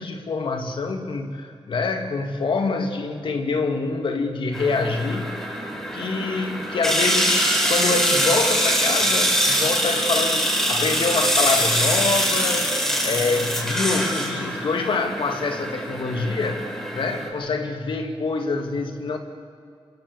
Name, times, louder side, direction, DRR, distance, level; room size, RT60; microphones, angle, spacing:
voice 1, 0.0-5.3 5.9-16.6 16.9-19.2, left 3 dB, 65° left, 4 dB, 2.6 m, -26 dB
sound 1, 4.5-17.3, equal, 5° left, 5.4 m, -23 dB
26.5 x 26.0 x 6.9 m, 2.3 s
wide cardioid pair, 130°, 9 cm